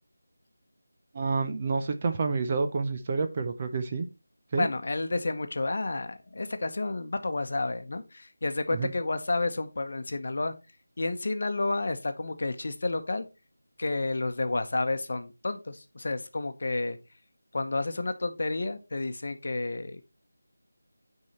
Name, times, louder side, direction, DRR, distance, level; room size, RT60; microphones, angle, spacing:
voice 1, 1.1-4.1 4.5-4.7 8.7-8.9, right 4 dB, 20° right, 0.5 m, -29 dB
voice 2, 4.6-10.5 11.0-13.2 13.8-17.0 17.5-20.0, left 2 dB, 40° left, 1.0 m, -30 dB
9.6 x 4.7 x 4.2 m
figure-of-eight pair, 180°, 0 cm